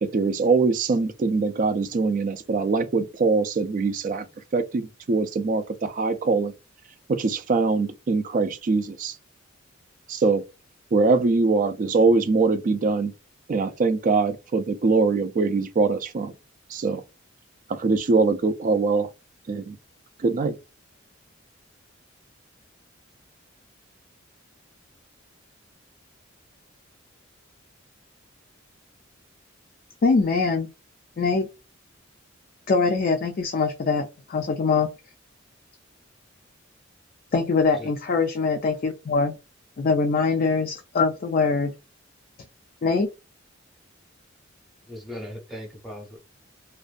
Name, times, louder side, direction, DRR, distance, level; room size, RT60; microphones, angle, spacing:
voice 1, 0.0-4.3 4.5-6.5 7.1-9.2 10.1-10.4 10.9-13.1 13.5-16.3 16.7-17.0 17.7-19.1 19.5-19.8 20.2-20.6, right 4 dB, 40° right, 0.3 m, -23 dB
voice 2, 30.0-30.7 31.2-31.5 32.7-34.9 37.3-39.4 39.8-41.7 42.8-43.1, left 4 dB, 45° left, 0.4 m, -23 dB
voice 3, 44.9-46.2, left 1 dB, ahead, 0.7 m, -38 dB
2.5 x 2.2 x 2.4 m
head